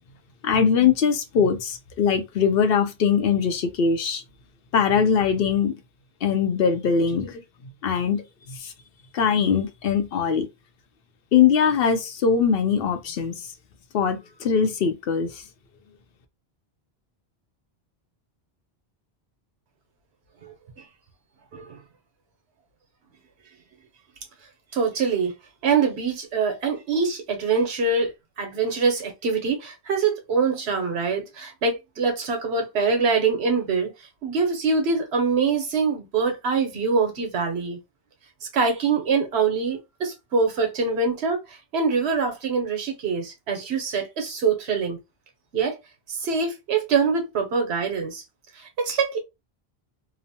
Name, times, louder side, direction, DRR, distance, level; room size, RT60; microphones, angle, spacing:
voice 1, 0.4-4.2 4.7-5.7 6.2-7.4 7.8-8.2 8.5-8.7 9.1-10.5 11.3-13.4 13.9-15.3, left 6 dB, 70° left, 0.8 m, -21 dB
voice 2, 24.7-25.3 25.6-33.9 34.2-37.8 38.5-45.0 45.5-45.8 46.1-48.2 48.6-49.2, right 5 dB, 90° right, 1.1 m, -24 dB
2.9 x 2.1 x 2.7 m
omnidirectional pair, 1.1 m